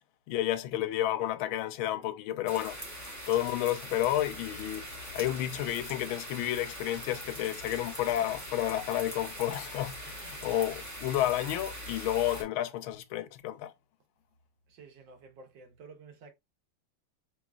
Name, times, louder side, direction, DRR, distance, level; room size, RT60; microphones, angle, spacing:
voice 1, 0.3-2.8 3.3-4.9 5.1-13.7, left 13 dB, 90° left, 1.4 m, -31 dB
sound 1, 2.5-12.4, equal, 15° right, 0.7 m, -42 dB
voice 2, 14.7-16.3, right 4 dB, 70° right, 1.6 m, -51 dB
4.9 x 3.1 x 2.3 m
omnidirectional pair, 2.2 m